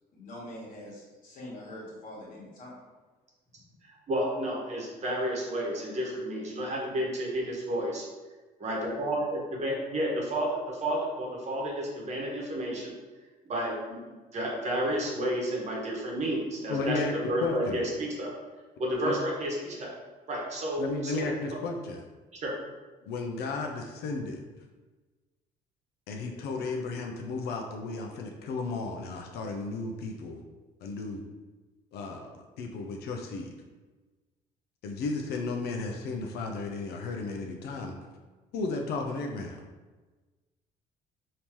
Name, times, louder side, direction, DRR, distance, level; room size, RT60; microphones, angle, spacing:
voice 1, 0.1-2.8, left 1 dB, 55° left, -5 dB, 1.4 m, -44 dB
voice 2, 3.8-8.0 8.6-12.9 13.4-17.0 17.3-18.3 18.8-19.9 20.3-21.3 22.4-22.5, right 1 dB, 40° right, -2 dB, 1.1 m, -31 dB
voice 3, 16.7-17.1 17.4-17.8 19.0-19.2 20.8-22.0 23.1-24.4 26.1-30.4 30.8-31.2 31.9-33.5 34.8-38.0 38.5-39.6, left 3 dB, 75° left, 2 dB, 0.5 m, -34 dB
3.5 x 2.8 x 3.0 m, 1.3 s
cardioid pair, 110°, 17 cm